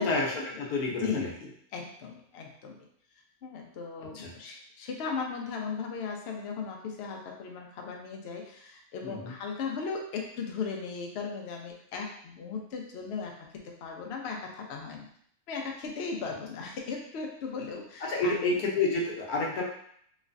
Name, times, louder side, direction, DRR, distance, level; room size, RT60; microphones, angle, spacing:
voice 1, 0.0-1.3 4.1-4.3 9.0-9.3 18.0-19.6, left 3 dB, 80° left, -2 dB, 1.2 m, -29 dB
voice 2, 0.9-2.9 3.4-15.1 15.5-18.5 19.4-19.5, left 5 dB, 60° left, 1 dB, 0.7 m, -37 dB
3.2 x 3.1 x 2.5 m, 0.65 s
omnidirectional pair, 1.6 m